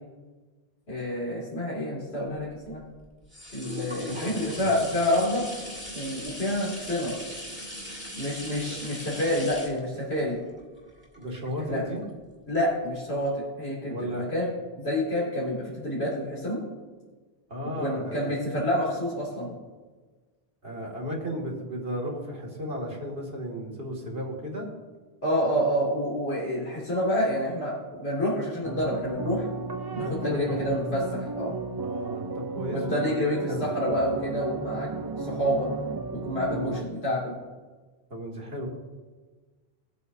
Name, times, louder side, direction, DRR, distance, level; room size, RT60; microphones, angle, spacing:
voice 1, 0.9-2.8 3.5-5.4 5.9-7.2 8.2-10.4 11.6-11.8 12.5-14.5 14.8-16.6 17.8-19.5 25.2-29.5 29.9-31.5 32.7-34.9 35.2-35.7 36.1-37.3, equal, 80° left, -7 dB, 3.0 m, -28 dB
sound 1, 2.3-12.0 12.5-12.6, equal, 10° right, 2.1 m, -40 dB
voice 2, 4.0-4.7 8.7-8.8 11.1-12.0 13.9-14.3 17.5-18.4 20.6-24.7 30.0-30.6 31.8-33.1 33.5-33.7 36.5-36.8 38.1-38.7, equal, 65° right, -3 dB, 2.6 m, -34 dB
sound 2, 28.6-36.8, right 4 dB, 30° right, 0.5 m, -34 dB
20.5 x 8.2 x 2.7 m, 1.3 s
omnidirectional pair, 1.1 m